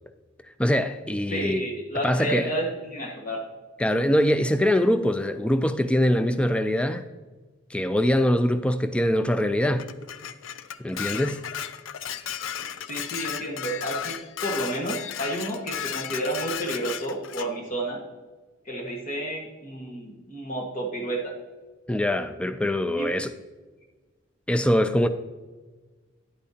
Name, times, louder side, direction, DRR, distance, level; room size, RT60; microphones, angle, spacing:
voice 1, 0.6-1.6 2.0-2.5 3.8-7.1 7.7-9.8 10.8-11.4 21.9-23.3 24.5-25.1, left 1 dB, 5° left, 0.3 m, -23 dB
voice 2, 1.3-3.4 12.9-18.0 18.6-21.3 23.0-23.1, right 1 dB, 45° left, 1.5 m, -31 dB
Dishes pots and pans, 9.8-17.5, left 9 dB, 80° left, 0.4 m, -34 dB
10.0 x 8.5 x 2.8 m
head